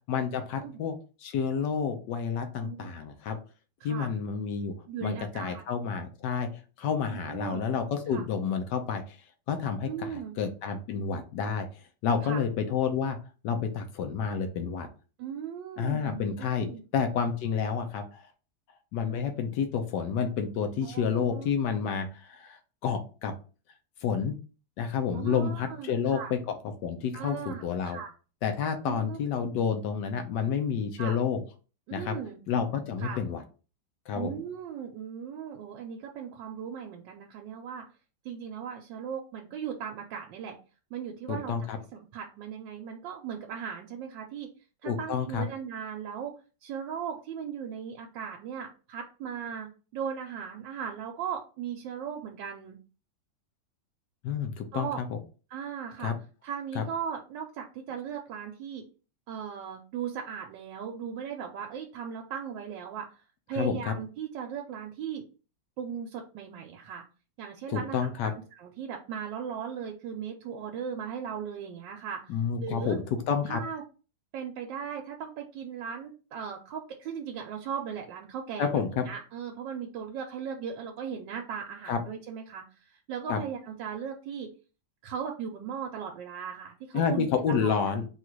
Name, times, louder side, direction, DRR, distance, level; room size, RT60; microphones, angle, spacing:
voice 1, 0.1-0.9 1.2-3.4 3.8-4.7 5.0-6.5 6.8-9.2 9.5-11.7 12.0-13.2 13.4-14.9 15.8-16.7 16.9-18.2 18.9-23.3 24.0-24.3 24.8-26.6 26.8-28.0 28.4-31.4 31.9-32.2 32.5-33.4 34.1-34.3 41.3-41.8 44.8-45.4 54.2-55.1 56.0-56.2 56.7-56.8 63.5-63.9 67.7-68.3 72.3-73.6 78.6-79.0 81.9-82.0 83.3-83.4 86.9-88.0, left 6 dB, 75° left, 7 dB, 1.3 m, -29 dB
voice 2, 4.9-5.6 7.2-7.7 8.1-8.2 9.9-10.3 12.2-12.4 15.2-16.8 20.8-21.5 21.7-21.8 25.1-26.3 27.1-28.1 28.9-29.2 31.0-31.2 31.9-32.4 33.0-33.2 34.1-37.8 38.2-40.6 40.9-41.5 42.1-44.5 44.8-52.8 54.7-55.0 55.5-56.1 56.4-58.8 59.3-65.3 65.8-67.0 67.4-73.0 73.5-73.8 74.3-84.5 85.0-87.8, right 7 dB, 90° right, 2 dB, 1.3 m, -38 dB
3.8 x 2.4 x 4.5 m, 0.35 s
omnidirectional pair, 1.9 m